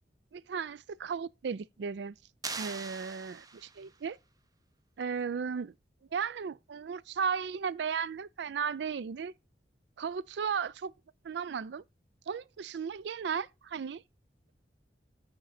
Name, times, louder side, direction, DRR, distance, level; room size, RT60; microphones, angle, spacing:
voice 1, 0.3-2.2 2.6-3.4 3.8-4.2 5.0-5.7 6.1-9.3 10.0-10.9 11.2-11.8 12.3-14.0, right 6 dB, 75° right, 0.4 m, -35 dB
sound 1, 2.4-4.0, right 4 dB, 20° right, 0.6 m, -41 dB
8.9 x 5.1 x 4.3 m
head